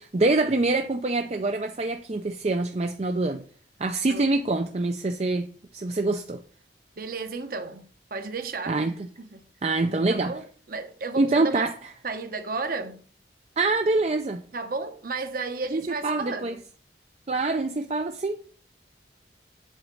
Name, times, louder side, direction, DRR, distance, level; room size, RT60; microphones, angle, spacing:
voice 1, 0.0-3.4 3.8-5.5 5.7-6.4 8.7-8.9 9.6-10.3 11.2-11.7 13.6-14.4 15.7-16.5 17.3-18.4, right 2 dB, 35° right, 0.5 m, -25 dB
voice 2, 7.0-8.8 9.2-9.4 10.1-11.7 12.0-13.0 14.5-16.6, right 3 dB, 50° right, 1.0 m, -33 dB
8.0 x 4.2 x 6.3 m
head